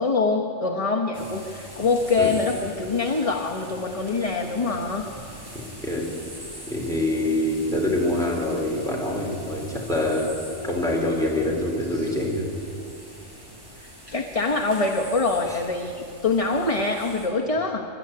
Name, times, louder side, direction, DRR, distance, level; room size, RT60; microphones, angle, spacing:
voice 1, 0.0-5.1 13.8-17.9, left 3 dB, 30° left, 1 dB, 1.2 m, -24 dB
sound 1, 1.1-17.3, equal, 20° right, 5.0 m, -43 dB
voice 2, 6.7-10.3 10.6-12.4 15.5-15.6, left 1 dB, 5° left, -3 dB, 4.3 m, -25 dB
24.5 x 12.5 x 9.7 m, 2.6 s
omnidirectional pair, 1.2 m